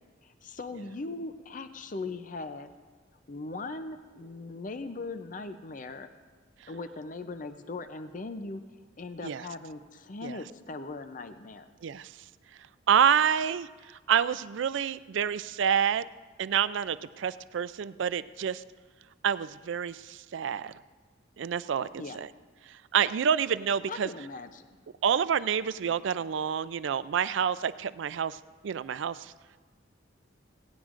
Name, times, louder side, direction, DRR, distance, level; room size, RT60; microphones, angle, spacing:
voice 1, 0.2-2.7 3.3-6.1 6.7-8.6 9.0-11.7 22.0-22.2 23.9-24.7, left 3 dB, 40° left, 10 dB, 0.5 m, -39 dB
voice 2, 11.8-12.1 12.9-16.1 16.4-18.6 19.2-20.7 21.4-22.3 22.9-24.1 25.0-29.3, right 8 dB, 70° right, 16 dB, 0.4 m, -28 dB
17.0 x 17.0 x 2.5 m, 1.4 s
head